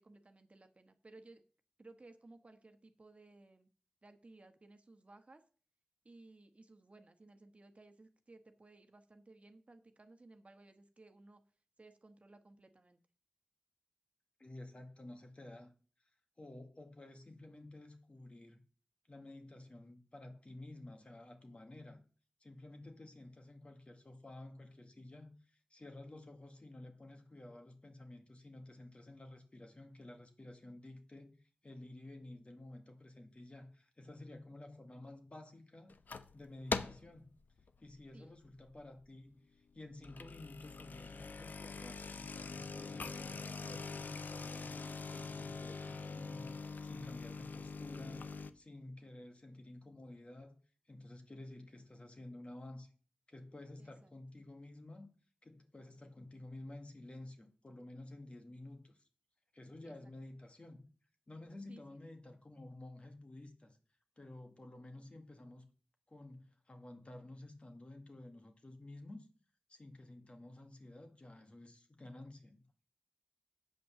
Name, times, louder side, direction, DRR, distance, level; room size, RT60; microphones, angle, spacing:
voice 1, 0.0-1.4 1.8-3.7 4.0-5.4 6.0-11.4 11.8-13.0 38.1-38.3 53.8-54.1 59.8-60.1 61.7-62.0, right 2 dB, 40° right, 1.3 m, -59 dB
voice 2, 14.4-15.7 16.4-18.6 19.1-22.0 22.4-36.0 36.3-37.3 37.8-48.3 48.5-50.6 50.9-52.9 53.3-55.1 55.4-59.1 59.5-60.8 61.3-63.8 64.2-65.7 66.1-69.3 69.7-72.6, left 1 dB, 40° left, 2.0 m, -52 dB
sound 1, 35.9-36.3 36.7-37.1 37.6-37.9 38.4-38.5 38.8-38.9 39.9-48.5, left 4 dB, 70° left, 0.7 m, -43 dB
8.1 x 5.3 x 7.1 m
cardioid pair, 45°, 3 cm